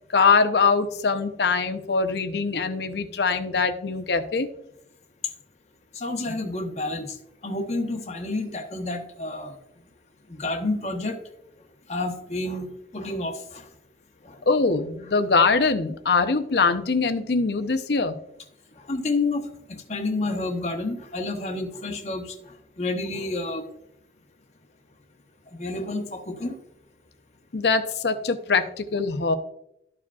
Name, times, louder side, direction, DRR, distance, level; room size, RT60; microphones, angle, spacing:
voice 1, 0.1-4.5 14.5-18.2 27.5-29.3, left 4 dB, 65° left, 8 dB, 0.6 m, -22 dB
voice 2, 5.9-7.2 7.4-9.6 10.3-11.2 11.9-13.7 14.2-14.4 18.9-19.4 19.7-22.4 22.8-23.6 25.6-26.6, left 2 dB, 40° left, 4 dB, 1.0 m, -29 dB
13.0 x 4.8 x 2.3 m, 0.78 s
head